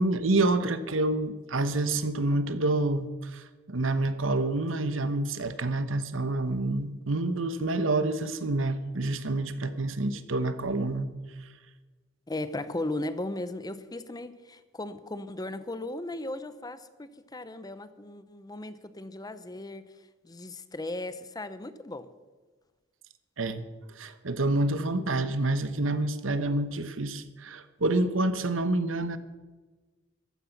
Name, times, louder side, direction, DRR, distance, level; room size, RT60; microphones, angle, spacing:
voice 1, 0.0-11.1 23.4-23.6 23.9-29.2, right 2 dB, 80° right, 12 dB, 1.1 m, -28 dB
voice 2, 12.3-19.8 20.2-22.1, left 2 dB, 20° left, 13 dB, 0.7 m, -37 dB
14.5 x 13.0 x 5.9 m, 1.3 s
head